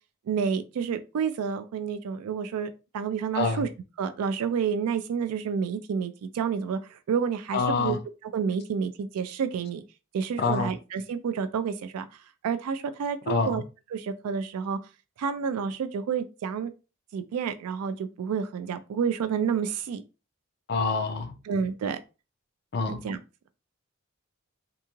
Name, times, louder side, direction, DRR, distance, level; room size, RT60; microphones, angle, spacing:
voice 1, 0.3-3.7 4.0-8.0 8.3-9.8 10.1-12.1 12.4-13.6 13.9-14.8 15.2-16.7 17.1-20.0 21.5-22.0 22.9-23.2, right 6 dB, 90° right, 0.3 m, -29 dB
voice 2, 3.3-3.7 7.5-8.0 10.4-10.7 13.3-13.6 20.7-21.4 22.7-23.0, left 4 dB, 45° left, 0.4 m, -26 dB
2.9 x 2.7 x 2.3 m
head